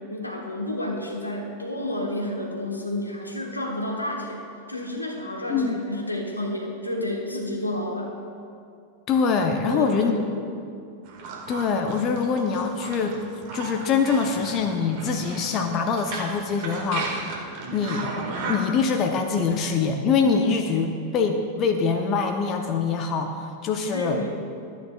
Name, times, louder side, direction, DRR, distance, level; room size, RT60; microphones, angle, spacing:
voice 1, 0.1-8.1 9.6-10.5 23.9-24.3, left 1 dB, 85° left, 0 dB, 1.2 m, -30 dB
voice 2, 9.1-10.1 11.5-13.2 13.5-17.1 17.7-18.1 18.5-24.2, left 5 dB, 35° left, 5 dB, 0.6 m, -24 dB
sound 1, 11.0-18.8, right 3 dB, 45° right, 1.6 m, -35 dB
13.0 x 9.1 x 2.3 m, 2.4 s
figure-of-eight pair, 90°, 0 cm